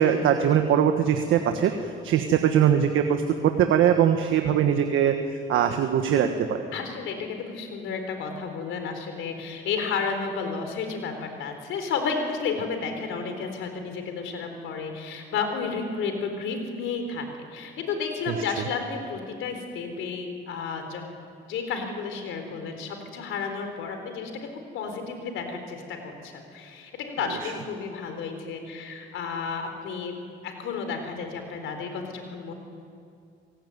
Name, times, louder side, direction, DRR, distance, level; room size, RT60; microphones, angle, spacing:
voice 1, 0.0-1.7 2.0-5.1 5.5-6.7 18.3-18.4 27.4-27.5, right 9 dB, 85° right, 6 dB, 1.5 m, -21 dB
voice 2, 6.7-17.3 17.5-21.0 21.5-24.3 24.7-30.2 30.4-32.5, left 5 dB, 85° left, 5 dB, 4.2 m, -32 dB
28.5 x 18.0 x 9.5 m, 2.3 s
cardioid pair, 90°, 20 cm